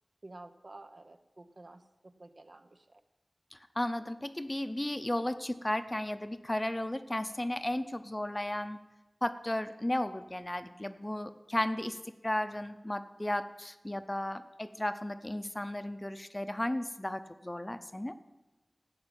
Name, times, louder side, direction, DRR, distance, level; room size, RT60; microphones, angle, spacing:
voice 1, 0.2-3.0 17.9-18.1, right 2 dB, 65° right, 8 dB, 0.9 m, -52 dB
voice 2, 3.5-8.8 9.2-12.0 12.2-18.1, left 1 dB, 25° left, 11 dB, 0.7 m, -34 dB
13.5 x 5.8 x 8.9 m, 1.1 s
wide cardioid pair, 40°, 0 cm